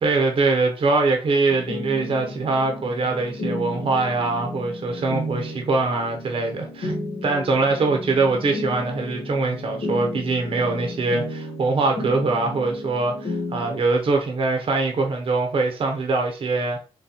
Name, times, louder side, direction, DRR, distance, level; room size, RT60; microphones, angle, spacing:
voice 1, 0.0-6.9 7.2-16.8, right 3 dB, 55° right, 0.7 m, -23 dB
sound 1, 1.5-13.8, left 1 dB, 80° left, 1.1 m, -33 dB
3.9 x 3.1 x 2.8 m
wide cardioid pair, 115°, 11 cm